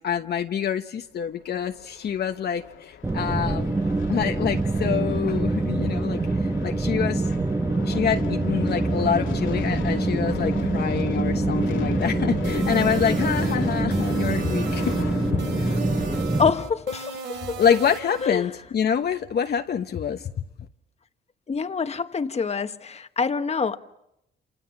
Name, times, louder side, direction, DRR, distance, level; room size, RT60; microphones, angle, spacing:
voice 1, 0.0-3.7 4.1-7.3 7.8-14.9 15.3-15.4 17.4-20.3, left 8 dB, 55° left, 5 dB, 1.2 m, -26 dB
sound 1, 1.5-16.2, left 8 dB, 75° left, 2.0 m, -36 dB
sound 2, 3.0-16.5, right 2 dB, 15° right, 1.4 m, -25 dB
sound 3, 12.4-18.3, right 5 dB, 70° right, 2.9 m, -37 dB
voice 2, 16.4-17.6 18.2-18.5 21.5-23.8, left 5 dB, 35° left, 9 dB, 1.4 m, -26 dB
28.0 x 27.0 x 7.3 m, 0.84 s
cardioid pair, 90°, 20 cm